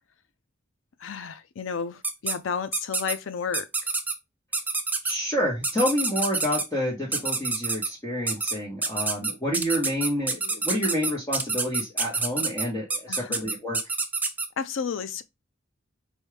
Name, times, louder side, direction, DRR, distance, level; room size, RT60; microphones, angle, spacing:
voice 1, 1.0-3.7 13.1-13.4 14.6-15.2, left 6 dB, 85° left, 0.5 m, -32 dB
sound 1, 2.0-2.3 2.7-3.1 3.5-4.1 4.5-5.1 5.6-6.6 7.1-7.9 8.3-8.5 8.8-14.5, right 4 dB, 10° right, 0.4 m, -27 dB
voice 2, 5.0-13.8, equal, 15° left, 1.2 m, -29 dB
4.7 x 2.7 x 3.3 m
head